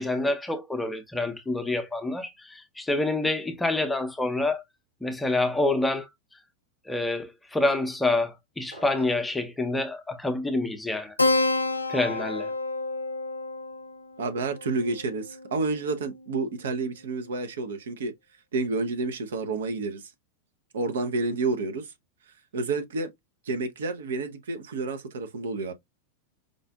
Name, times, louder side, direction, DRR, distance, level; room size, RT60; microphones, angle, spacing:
voice 1, 0.0-4.6 5.0-6.1 6.9-11.1 11.9-12.5, left 2 dB, 5° left, 0.6 m, -27 dB
sound 1, 8.7-9.3, right 1 dB, 80° right, 2.0 m, -46 dB
Keyboard (musical), 11.2-16.2, left 2 dB, 80° left, 0.3 m, -29 dB
voice 2, 14.2-18.1 18.5-20.1 20.7-21.9 22.5-23.1 23.4-25.7, right 3 dB, 60° right, 0.6 m, -29 dB
5.0 x 2.4 x 2.2 m
figure-of-eight pair, 90°, 0 cm